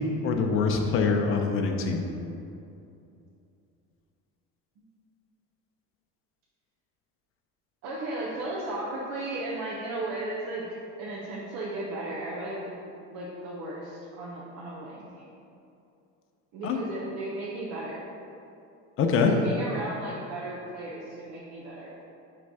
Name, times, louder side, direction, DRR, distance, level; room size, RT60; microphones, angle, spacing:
voice 1, 0.0-2.1 16.6-16.8 19.0-19.3, left 5 dB, 40° left, 3 dB, 0.7 m, -24 dB
voice 2, 7.8-10.6 11.0-15.4 16.5-18.0 19.2-22.1, right 2 dB, 60° right, -6 dB, 1.1 m, -35 dB
6.0 x 3.5 x 5.5 m, 2.6 s
cardioid pair, 135°, 33 cm